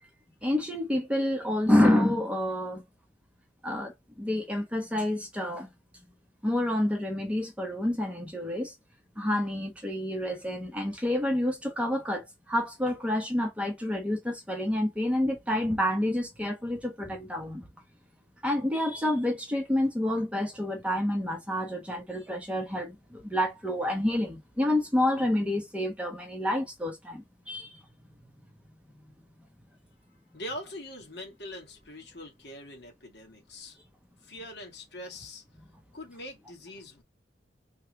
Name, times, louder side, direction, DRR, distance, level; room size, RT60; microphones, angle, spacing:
voice 1, 0.4-2.8 3.6-5.7 6.4-8.7 9.2-17.7 18.4-27.8, left 1 dB, 5° right, 1.0 m, -28 dB
voice 2, 30.3-33.8 34.2-35.4 35.9-37.0, left 1 dB, 65° left, 1.6 m, -42 dB
3.4 x 3.2 x 2.9 m
head